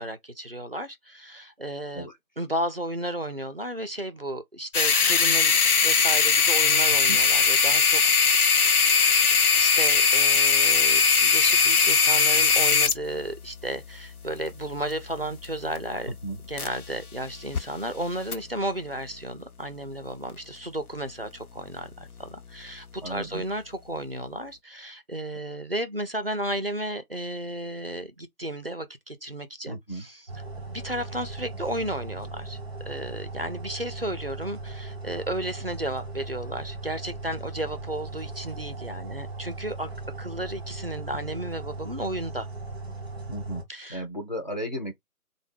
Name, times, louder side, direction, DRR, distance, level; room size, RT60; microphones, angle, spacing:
voice 1, 0.0-2.1 2.4-8.0 9.0-16.1 16.4-32.6 32.9-39.9 40.2-42.5 43.7-44.1, right 1 dB, 45° right, 0.4 m, -33 dB
sound 1, 4.7-17.0 17.3-17.6 18.3-18.4, left 5 dB, 75° left, 0.7 m, -21 dB
voice 2, 6.9-7.2 16.2-16.4 23.0-23.4 29.7-30.1 43.3-43.6 43.9-44.9, right 1 dB, 30° left, 0.6 m, -34 dB
sound 2, 30.3-43.6, right 3 dB, 15° right, 0.7 m, -38 dB
3.6 x 2.1 x 3.2 m
figure-of-eight pair, 155°, 45 cm